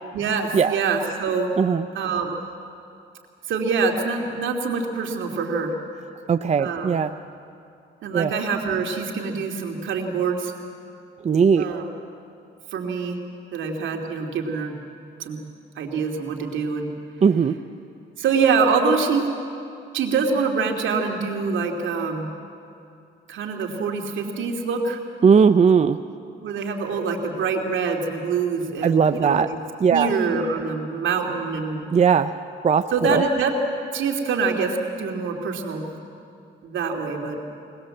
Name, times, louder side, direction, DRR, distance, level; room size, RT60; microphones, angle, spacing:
voice 1, 0.1-1.5 1.9-2.4 3.5-5.7 6.6-7.0 8.0-10.5 11.6-11.9 12.7-13.2 13.5-14.7 15.2-15.4 15.8-16.9 18.2-19.3 19.9-22.3 23.3-25.0 26.4-29.4 29.9-31.8 32.9-33.5 33.9-36.0 36.6-37.4, right 5 dB, 75° right, 2 dB, 2.7 m, -25 dB
voice 2, 6.3-7.1 8.1-8.3 11.2-11.7 17.2-17.5 25.2-26.0 28.8-29.5 29.8-30.1 31.9-32.3 32.6-33.2, right 6 dB, 35° right, 10 dB, 0.6 m, -18 dB
21.5 x 19.5 x 7.8 m, 2.5 s
cardioid pair, 90°, 20 cm